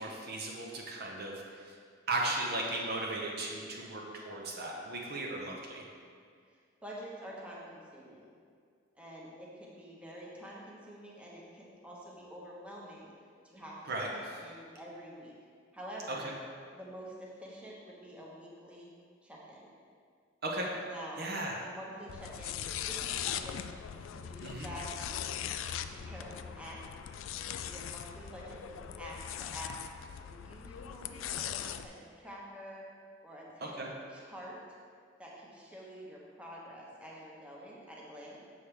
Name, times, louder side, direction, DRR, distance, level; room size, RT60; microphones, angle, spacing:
voice 1, 0.0-1.3 2.1-5.8 13.9-14.1 16.1-16.2 20.4-20.7 21.2-21.6 24.4-24.7 33.8-33.9, right 2 dB, 55° right, -1 dB, 0.9 m, -36 dB
voice 2, 6.5-8.3 8.9-13.1 13.4-13.8 14.1-15.3 15.7-16.3 16.7-18.9 19.2-19.7 20.9-21.2 21.6-22.6 22.8-23.6 24.0-24.9 25.9-26.8 27.4-29.7 30.2-32.8 33.2-34.6 35.2-38.4, equal, 5° right, -5 dB, 1.0 m, -48 dB
sound 1, 22.1-31.8, left 9 dB, 80° left, 0.3 m, -40 dB
7.2 x 6.5 x 3.3 m, 2.1 s
head